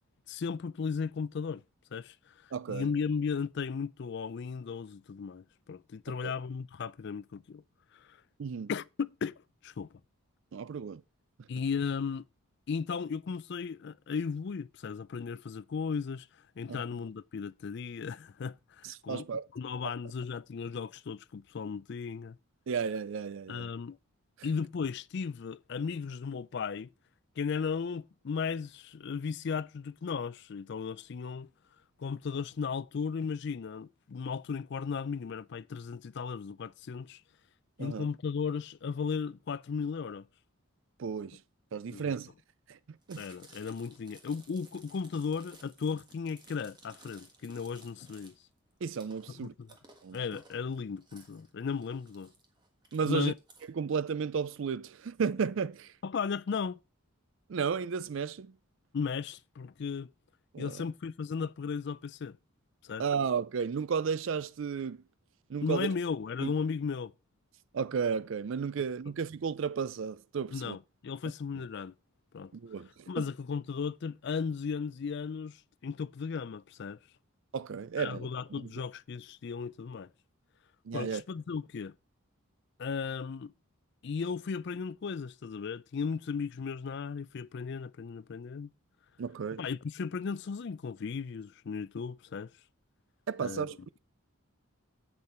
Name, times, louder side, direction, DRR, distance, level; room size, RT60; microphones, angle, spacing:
voice 1, 0.3-1.6 1.9-2.1 2.7-7.6 8.1-8.2 8.7-10.0 11.5-12.2 12.7-16.3 16.6-19.3 19.5-22.4 23.5-24.0 24.4-26.9 27.4-31.5 32.0-37.2 37.8-40.3 41.9-42.1 43.2-48.3 49.4-49.7 50.1-52.3 53.0-53.3 56.0-56.8 58.9-60.1 60.6-62.4 62.8-63.0 65.6-67.1 70.5-71.9 72.3-72.5 73.1-75.6 75.8-77.0 78.0-80.1 80.9-81.9 82.8-83.5 84.0-88.7 89.6-92.5 93.4-93.7, left 5 dB, 55° left, 0.4 m, -35 dB
voice 2, 2.5-2.9 6.1-6.3 8.4-8.7 10.5-11.0 16.7-16.8 18.8-19.5 22.7-23.7 24.4-24.5 37.8-38.1 41.0-41.4 41.7-42.3 42.7-43.3 48.8-49.5 50.0-50.2 52.9-53.3 53.8-55.9 57.5-58.5 60.5-60.7 63.0-65.0 65.5-65.9 66.4-66.5 67.7-70.8 72.5-73.2 77.5-78.3 80.9-81.2 89.2-89.6 93.3-94.0, right 6 dB, 60° right, 0.4 m, -33 dB
Chewing mastication, 43.0-53.7, right 3 dB, 20° right, 1.5 m, -58 dB
8.2 x 6.8 x 4.3 m
head